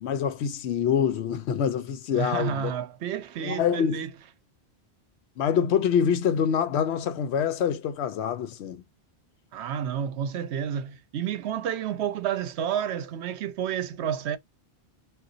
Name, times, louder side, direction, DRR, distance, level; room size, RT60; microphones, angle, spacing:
voice 1, 0.0-2.8 3.4-4.1 5.4-8.8, left 8 dB, 80° left, 0.9 m, -25 dB
voice 2, 2.1-4.1 9.5-14.4, right 9 dB, 90° right, 0.9 m, -30 dB
3.8 x 2.5 x 2.4 m
omnidirectional pair, 1.1 m